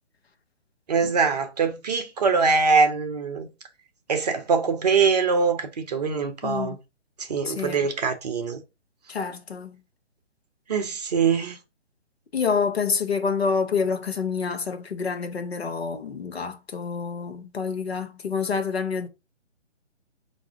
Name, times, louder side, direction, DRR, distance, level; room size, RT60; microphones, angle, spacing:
voice 1, 0.9-3.5 4.1-6.8 7.3-8.6 10.7-11.6, right 5 dB, 35° right, 0.7 m, -23 dB
voice 2, 6.4-6.7 7.4-7.8 9.1-9.8 12.3-19.1, left 5 dB, 60° left, 1.0 m, -27 dB
3.6 x 2.7 x 4.4 m
figure-of-eight pair, 145°, 36 cm